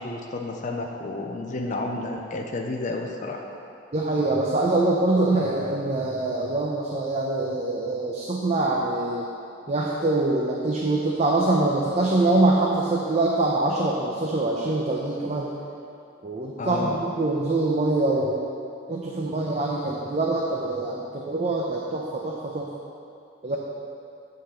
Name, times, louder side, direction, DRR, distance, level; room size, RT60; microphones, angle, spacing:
voice 1, 0.0-3.4 16.6-17.0, left 2 dB, 40° left, 1 dB, 0.5 m, -31 dB
voice 2, 3.9-9.3 9.7-15.5 16.2-18.4 18.9-22.7 23.4-23.6, right 2 dB, 35° right, -2 dB, 0.6 m, -24 dB
8.6 x 3.9 x 6.7 m, 2.6 s
head